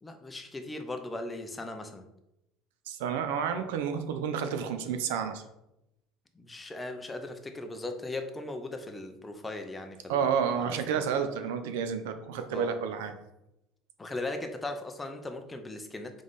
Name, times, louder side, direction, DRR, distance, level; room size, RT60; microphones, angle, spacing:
voice 1, 0.0-2.0 6.3-11.0 12.5-12.8 14.0-16.2, left 2 dB, 15° left, 6 dB, 0.6 m, -38 dB
voice 2, 2.9-5.4 10.1-13.1, right 7 dB, 85° right, 8 dB, 0.5 m, -30 dB
3.6 x 3.3 x 3.9 m, 0.88 s
supercardioid pair, 105°, 0 cm